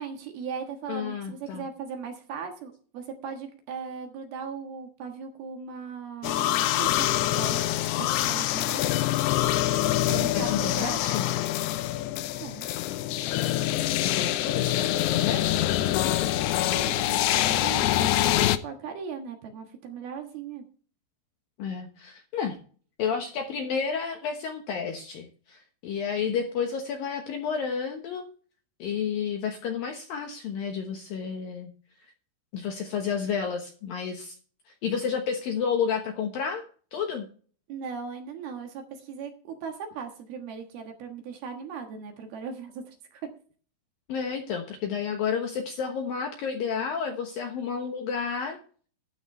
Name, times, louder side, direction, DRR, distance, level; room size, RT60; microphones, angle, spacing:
voice 1, 0.0-7.1 7.4-7.6 8.0-8.8 10.1-11.0 12.4-12.7 16.7-20.6 37.7-43.2, right 6 dB, 65° right, 4 dB, 2.9 m, -38 dB
voice 2, 0.9-1.7 10.3-11.3 14.0-16.3 21.6-22.6 23.0-28.2 28.8-31.7 32.5-34.4 34.7-36.6 36.9-37.3 44.1-48.6, left 6 dB, 70° left, 4 dB, 2.3 m, -31 dB
sound 1, 6.2-18.6, left 14 dB, 90° left, 2.3 m, -25 dB
13.0 x 12.0 x 3.2 m, 0.42 s
omnidirectional pair, 5.5 m